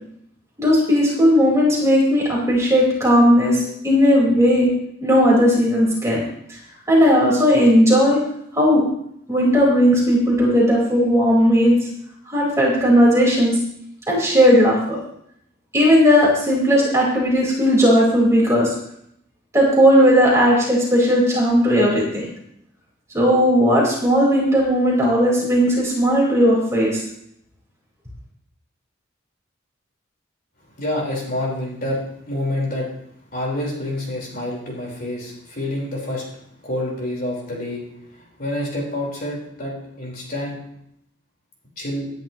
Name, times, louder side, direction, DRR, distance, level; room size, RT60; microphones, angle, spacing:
voice 1, 0.6-4.7 5.0-6.2 6.5-6.6 6.9-8.2 8.5-8.8 9.3-11.8 12.3-13.6 14.1-15.0 15.7-18.7 19.5-22.2 23.1-27.0, equal, 15° right, -4 dB, 4.5 m, -16 dB
voice 2, 30.8-32.0 32.3-32.9 33.3-36.2 36.6-37.8 38.1-40.6 41.8-42.1, left 1 dB, 45° left, -2 dB, 4.4 m, -27 dB
19.0 x 10.5 x 3.0 m, 0.72 s
head